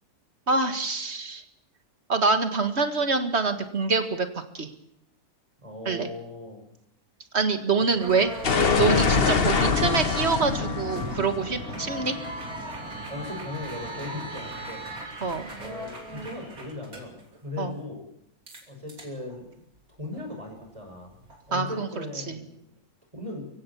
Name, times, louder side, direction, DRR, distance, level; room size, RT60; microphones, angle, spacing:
voice 1, 0.5-1.4 2.1-4.7 5.9-6.1 7.3-8.3 8.8-12.2 15.2-15.5 17.6-17.7 21.5-22.4, right 4 dB, 45° right, 8 dB, 2.0 m, -25 dB
voice 2, 5.6-6.6 7.8-8.0 13.1-14.9 15.6-18.1 18.7-19.5 19.9-21.2 21.5-22.6 23.1-23.5, left 2 dB, 20° right, 2 dB, 6.0 m, -38 dB
sound 1, 8.0-17.2 18.5-18.6 18.9-19.4 20.1-20.4 21.1-21.4, right 2 dB, 75° right, 3.9 m, -38 dB
sound 2, 8.4-13.2, left 5 dB, 45° left, 1.3 m, -25 dB
24.0 x 16.0 x 7.1 m, 0.76 s
omnidirectional pair, 1.5 m